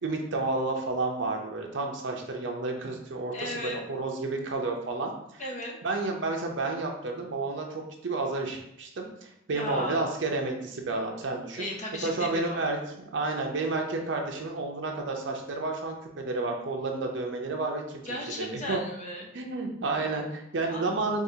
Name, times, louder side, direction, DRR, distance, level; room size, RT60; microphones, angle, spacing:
voice 1, 0.0-5.1 5.8-11.7 12.0-12.8 13.1-18.0 18.4-18.8 19.3-21.2, right 3 dB, 70° right, 1 dB, 0.6 m, -31 dB
voice 2, 3.3-3.8 5.4-5.8 9.5-10.1 11.5-12.6 18.0-19.3 20.7-21.0, left 1 dB, 35° left, -1 dB, 0.6 m, -36 dB
4.7 x 2.4 x 2.8 m, 0.77 s
head